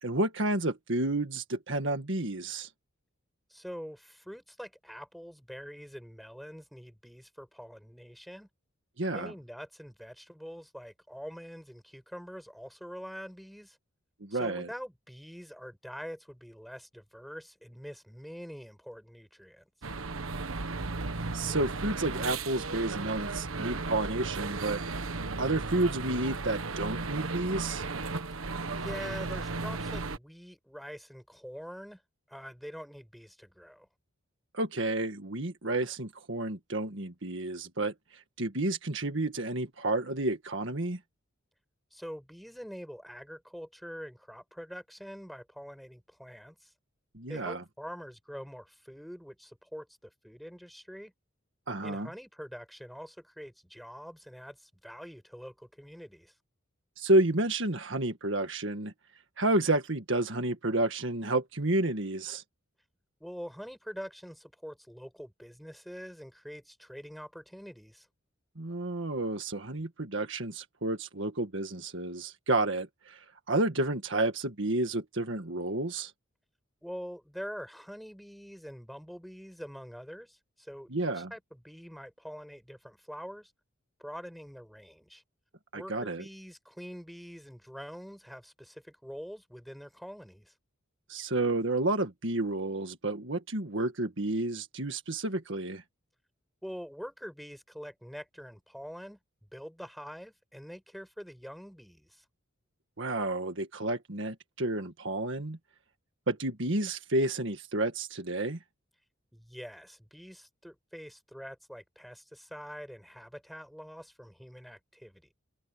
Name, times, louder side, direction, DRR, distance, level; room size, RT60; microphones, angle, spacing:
voice 1, 0.0-2.7 9.0-9.3 14.2-14.7 21.3-24.8 25.4-27.9 34.5-41.0 47.1-47.6 51.7-52.1 57.0-58.9 59.4-62.4 68.6-76.1 80.9-81.3 85.7-86.2 91.1-95.8 103.0-105.6 106.3-108.6, right 2 dB, 60° right, 1.8 m, -30 dB
voice 2, 3.5-8.5 9.1-13.8 14.3-19.6 28.7-32.0 32.3-33.9 41.9-46.7 47.3-51.1 51.8-56.3 63.2-68.1 76.8-83.5 84.0-85.2 85.7-90.5 96.6-99.2 99.5-102.2 109.3-115.3, equal, ahead, 6.8 m, -45 dB
sound 1, 19.8-30.2, right 3 dB, 80° right, 1.3 m, -35 dB
head